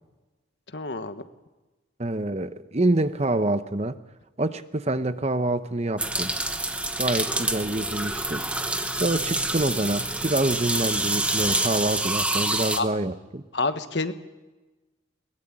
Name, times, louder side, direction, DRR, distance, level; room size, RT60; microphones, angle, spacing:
voice 1, 0.7-1.3 12.7-12.9 13.5-14.1, left 3 dB, 60° left, 9 dB, 1.3 m, -28 dB
voice 2, 2.0-4.0 4.4-6.3 7.0-8.5 9.0-13.4, right 2 dB, 35° right, 11 dB, 0.8 m, -26 dB
sound 1, 6.0-12.8, right 2 dB, 5° right, 1.0 m, -27 dB
21.5 x 19.5 x 8.8 m, 1.2 s
head